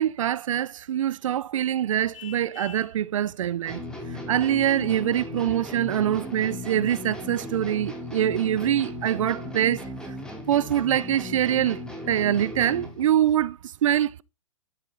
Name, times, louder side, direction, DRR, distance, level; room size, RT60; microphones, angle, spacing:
voice 1, 0.0-3.8 4.3-9.8 10.5-11.8 12.1-14.2, right 11 dB, 70° right, 0.7 m, -24 dB
Vehicle horn car horn honking, 2.1-3.0, left 8 dB, 70° left, 3.1 m, -44 dB
sound 1, 3.7-13.1, left 1 dB, 5° left, 3.7 m, -37 dB
13.0 x 10.5 x 4.0 m
hypercardioid pair, 135°, 17 cm